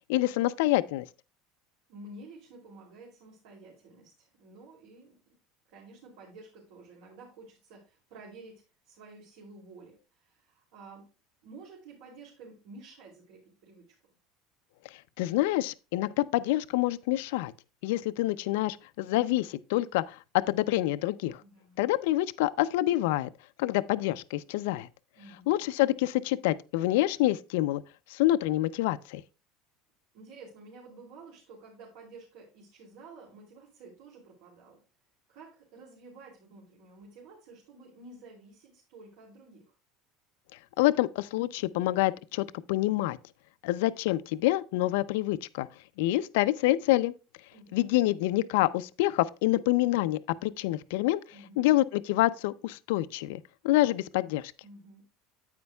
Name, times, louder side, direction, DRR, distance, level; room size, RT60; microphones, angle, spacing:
voice 1, 0.1-1.1 15.2-17.5 17.8-21.4 21.8-23.3 23.6-24.9 25.5-27.8 28.1-29.2 40.8-43.2 43.6-45.7 46.0-47.1 47.7-51.2 51.6-54.5, left 16 dB, 80° left, 0.4 m, -27 dB
voice 2, 1.9-5.3 5.7-11.1 11.4-14.2 21.4-21.8 25.1-25.5 30.1-34.8 35.3-39.7 47.5-47.9 51.3-51.7 54.6-55.1, right 3 dB, 70° right, 2.8 m, -51 dB
9.5 x 8.8 x 2.3 m
cardioid pair, 160°, 0 cm